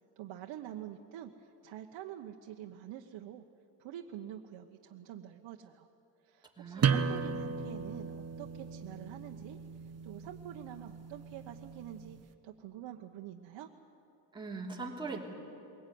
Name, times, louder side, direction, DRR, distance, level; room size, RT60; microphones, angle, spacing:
voice 1, 0.2-3.4 3.8-5.9 6.2-13.7, right 11 dB, 70° right, 3 dB, 1.1 m, -47 dB
voice 2, 6.6-7.0 14.3-15.2, right 3 dB, 10° right, -2 dB, 3.1 m, -40 dB
sound 1, 6.8-12.2, right 6 dB, 35° right, 1.1 m, -35 dB
22.0 x 17.5 x 9.3 m, 2.9 s
cardioid pair, 130°, 46 cm